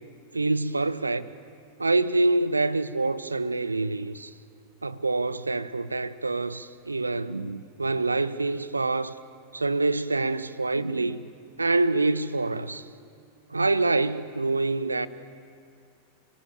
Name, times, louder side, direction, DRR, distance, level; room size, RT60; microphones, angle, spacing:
voice 1, 0.3-1.3 1.8-4.3 4.8-9.2 9.5-11.3 11.6-12.9 13.5-15.1, right 2 dB, 80° right, 0.7 m, -26 dB
29.5 x 18.0 x 7.1 m
figure-of-eight pair, 90°, 0 cm